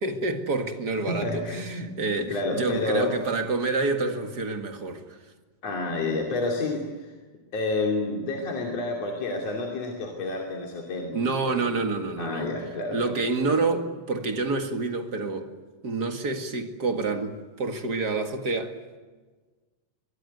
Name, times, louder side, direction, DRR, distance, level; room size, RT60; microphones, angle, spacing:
voice 1, 0.0-5.2 11.1-12.5 12.9-15.5 15.8-18.8, right 3 dB, 35° right, 1.8 m, -28 dB
voice 2, 1.1-1.9 2.3-3.1 5.6-7.1 7.5-11.2 11.6-11.7 12.2-13.1, left 2 dB, 50° left, 3.7 m, -29 dB
23.5 x 22.5 x 9.4 m
omnidirectional pair, 4.0 m